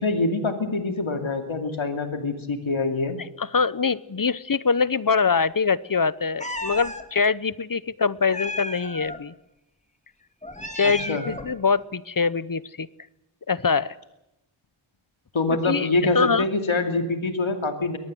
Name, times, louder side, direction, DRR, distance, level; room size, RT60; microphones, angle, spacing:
voice 1, 0.0-3.2 10.8-11.3 15.3-18.0, left 3 dB, 80° left, 6 dB, 2.6 m, -25 dB
voice 2, 3.4-9.3 10.8-12.9 13.5-14.0 15.7-15.9 16.1-16.4, left 5 dB, 45° left, 18 dB, 0.9 m, -23 dB
Meow, 6.4-7.0 8.3-9.2 10.4-11.5, left 1 dB, 15° left, 2.4 m, -33 dB
24.0 x 18.5 x 7.8 m, 0.89 s
wide cardioid pair, 55°, 47 cm